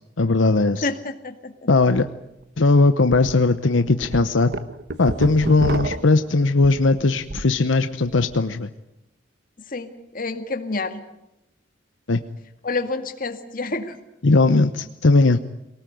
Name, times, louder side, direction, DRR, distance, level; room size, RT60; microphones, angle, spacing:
voice 1, 0.2-0.9 1.7-2.1 2.6-4.5 5.0-8.7 12.1-12.2 14.2-15.4, left 3 dB, 80° left, 10 dB, 0.9 m, -18 dB
voice 2, 0.8-1.7 9.7-11.0 12.6-13.9, left 3 dB, 45° left, 7 dB, 2.0 m, -28 dB
sound 1, 2.0-2.1 2.4-2.5 3.1-3.3 3.8-7.6 7.9-8.4, right 1 dB, 60° right, 1.1 m, -30 dB
23.5 x 18.5 x 9.3 m, 0.90 s
head